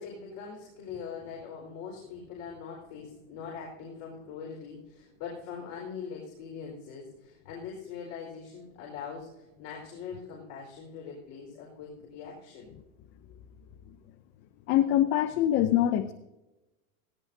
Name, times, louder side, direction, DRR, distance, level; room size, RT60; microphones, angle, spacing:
voice 1, 0.0-12.7, left 6 dB, 45° left, -2 dB, 4.7 m, -42 dB
voice 2, 14.7-16.1, left 12 dB, 30° left, 11 dB, 0.5 m, -24 dB
18.5 x 16.5 x 2.7 m, 1.0 s
supercardioid pair, 150°, 40 cm